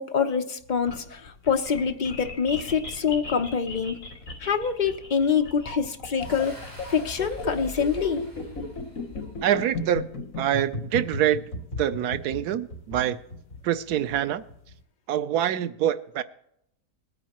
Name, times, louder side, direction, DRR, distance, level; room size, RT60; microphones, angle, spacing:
voice 1, 0.0-4.0 4.4-6.5 6.9-8.2, left 6 dB, 40° left, 0.7 m, -25 dB
sound 1, 0.6-14.7, left 2 dB, 60° left, 2.5 m, -36 dB
Boom, 6.2-9.8, right 1 dB, 10° right, 3.4 m, -43 dB
voice 2, 9.4-10.0 10.4-11.5 11.8-13.2 13.6-14.4 15.1-16.2, right 11 dB, 90° right, 1.2 m, -25 dB
20.5 x 9.5 x 3.0 m
omnidirectional pair, 1.6 m